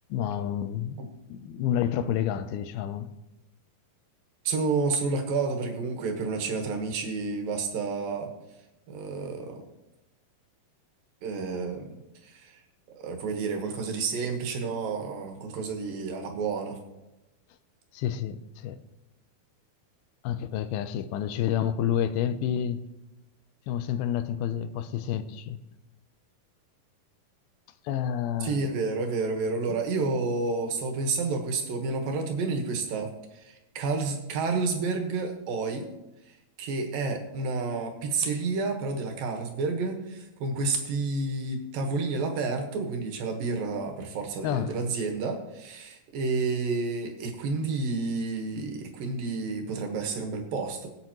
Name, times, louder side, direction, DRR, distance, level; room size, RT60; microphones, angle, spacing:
voice 1, 0.1-1.0 1.3-3.1 17.9-18.8 20.2-22.8 23.7-25.6 27.9-28.7 44.4-44.8, left 9 dB, 85° left, 2.6 m, -29 dB
voice 2, 4.4-8.3 8.9-9.6 11.2-11.8 12.2-12.6 12.9-16.8 28.4-35.9 36.6-50.9, right 4 dB, 75° right, 3.0 m, -30 dB
21.5 x 8.2 x 3.0 m
omnidirectional pair, 4.3 m